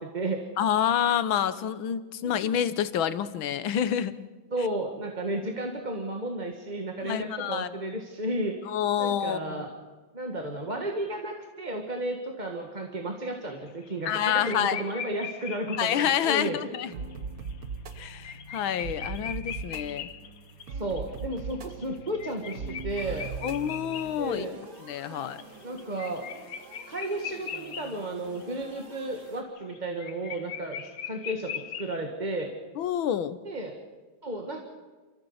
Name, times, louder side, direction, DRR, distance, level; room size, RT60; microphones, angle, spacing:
voice 1, 0.0-0.4 2.2-2.4 4.5-8.6 9.0-9.7 10.1-16.7 20.7-23.3 24.2-24.5 25.1-26.2 26.9-32.5 33.4-33.8 34.2-34.6, right 1 dB, 25° right, 2 dB, 1.6 m, -33 dB
voice 2, 0.6-4.2 7.0-7.7 8.7-9.6 14.1-14.8 15.8-16.9 18.0-20.1 23.4-24.5 24.8-25.4 32.8-33.4, left 9 dB, 85° left, 13 dB, 1.7 m, -28 dB
sound 1, 13.5-13.9 14.2-16.5 17.1-17.2 17.5-17.6 17.9-24.8 25.2-28.1 28.3-28.4 28.7-32.0, left 8 dB, 55° left, 1.1 m, -40 dB
sound 2, 16.9-24.4, right 5 dB, 55° right, 1.5 m, -39 dB
sound 3, 22.9-29.4, right 4 dB, 90° right, 2.9 m, -50 dB
28.5 x 14.5 x 7.2 m, 1.3 s
omnidirectional pair, 2.1 m